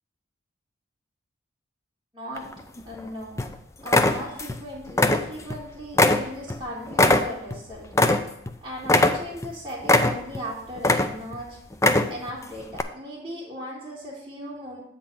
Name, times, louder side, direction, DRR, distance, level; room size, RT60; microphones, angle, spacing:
voice 1, 2.1-3.4 3.8-7.9 8.6-11.6 12.1-14.8, equal, 20° right, -8 dB, 1.9 m, -37 dB
sound 1, 2.4-3.0 3.4-3.5 3.9-4.6 4.9-5.6 6.0-8.5 8.8-9.5 9.8-10.4 10.8-11.4 11.7-12.3 12.7-12.8, left 2 dB, 15° left, 0.4 m, -21 dB
8.4 x 3.9 x 6.7 m, 0.77 s
head